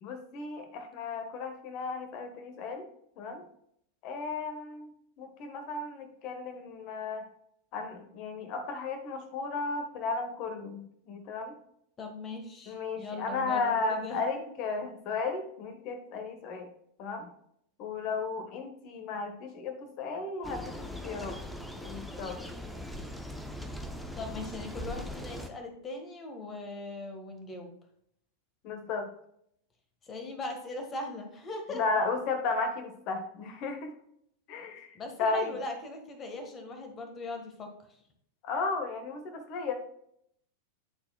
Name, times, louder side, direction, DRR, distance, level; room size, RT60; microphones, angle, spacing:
voice 1, 0.0-2.9 3.2-3.4 4.0-4.9 5.2-7.2 7.7-11.5 12.7-16.7 17.0-17.3 17.8-21.4 21.8-22.4 28.6-29.1 31.7-33.9 34.5-35.6 38.4-39.7, left 4 dB, 40° left, 6 dB, 1.2 m, -34 dB
voice 2, 12.0-14.2 24.2-27.7 30.1-31.8 34.9-37.7, left 2 dB, 25° left, 4 dB, 1.5 m, -40 dB
sound 1, 20.4-25.5, left 1 dB, 5° left, 0.7 m, -40 dB
11.0 x 4.4 x 2.3 m, 0.71 s
figure-of-eight pair, 90°, 0 cm